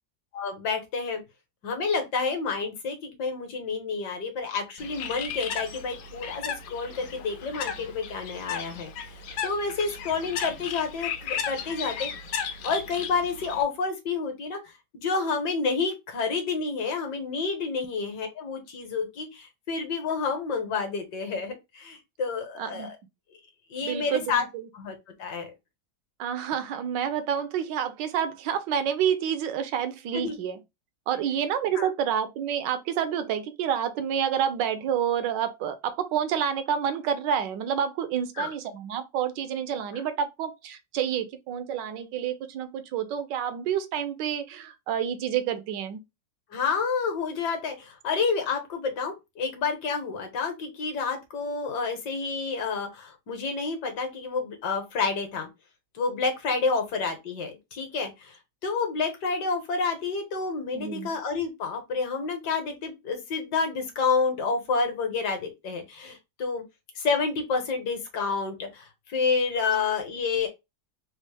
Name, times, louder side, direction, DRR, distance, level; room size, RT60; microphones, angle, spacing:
voice 1, 0.3-1.2 1.6-9.1 9.4-12.1 12.6-14.6 14.9-22.9 23.7-24.4 24.7-25.5 30.1-30.4 31.8-31.9 38.4-38.5 46.5-55.5 55.9-66.6 67.0-70.5, left 4 dB, 65° left, 1.5 m, -29 dB
Bird, 4.8-13.6, left 7 dB, 85° left, 1.4 m, -35 dB
voice 2, 22.6-22.9 23.8-24.7 26.2-30.6 31.1-46.0 60.7-61.1, right 8 dB, 75° right, 1.2 m, -29 dB
4.1 x 2.0 x 3.2 m
omnidirectional pair, 2.0 m